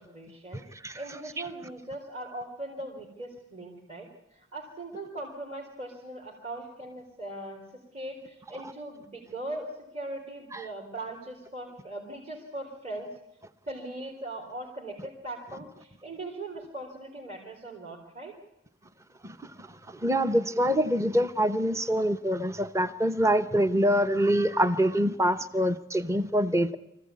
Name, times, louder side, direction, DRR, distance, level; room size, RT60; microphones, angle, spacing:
voice 1, 0.0-0.6 0.9-7.6 7.9-13.1 13.7-18.3, right 1 dB, 35° right, -2 dB, 3.6 m, -40 dB
voice 2, 19.2-26.8, equal, 15° right, 11 dB, 0.8 m, -25 dB
24.5 x 15.5 x 9.5 m, 0.89 s
head